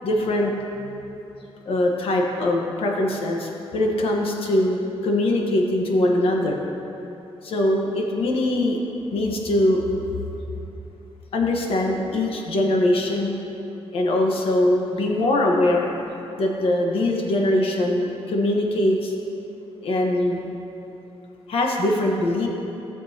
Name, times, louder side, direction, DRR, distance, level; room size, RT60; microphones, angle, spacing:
voice 1, 0.0-0.5 0.8-1.0 1.6-6.6 7.4-8.8 9.1-9.8 11.3-13.4 13.9-15.9 16.4-19.1 19.8-20.5 21.5-22.5, left 1 dB, 60° left, 0 dB, 1.2 m, -22 dB
16.0 x 7.1 x 2.9 m, 2.9 s
wide cardioid pair, 150°, 11 cm